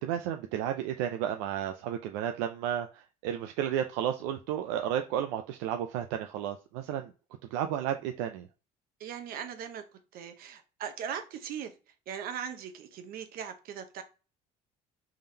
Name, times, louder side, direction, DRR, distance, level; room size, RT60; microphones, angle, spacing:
voice 1, 0.0-7.1 7.5-8.5, right 10 dB, 85° right, 0.4 m, -32 dB
voice 2, 9.0-9.8 10.1-11.7 12.1-14.0, right 8 dB, 65° right, 0.8 m, -39 dB
3.6 x 3.4 x 2.8 m
supercardioid pair, 80°, 17 cm